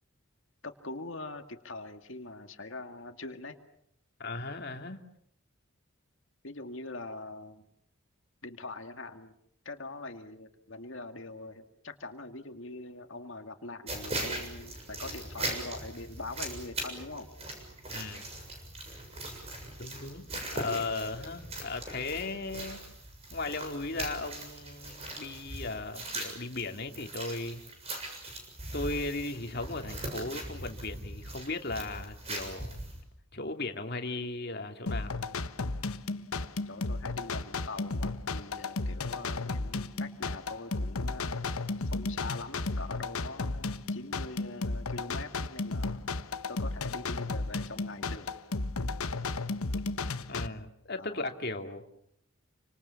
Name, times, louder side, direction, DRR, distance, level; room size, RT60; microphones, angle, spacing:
voice 1, 0.6-3.6 6.4-7.7 8.4-9.4 9.6-17.3 36.7-41.5 41.8-46.1 46.5-48.3 51.0-51.3, left 2 dB, 65° left, 6 dB, 2.1 m, -43 dB
voice 2, 4.2-5.0 17.9-18.3 19.8-20.3 20.5-22.8 23.3-27.6 28.7-32.8 33.3-35.4 50.3-51.8, left 3 dB, 50° left, 5 dB, 2.7 m, -36 dB
sound 1, 13.9-33.0, right 2 dB, 30° right, 7.1 m, -40 dB
sound 2, 34.9-50.5, left 3 dB, 90° left, 1.2 m, -34 dB
28.5 x 26.0 x 7.2 m, 0.71 s
head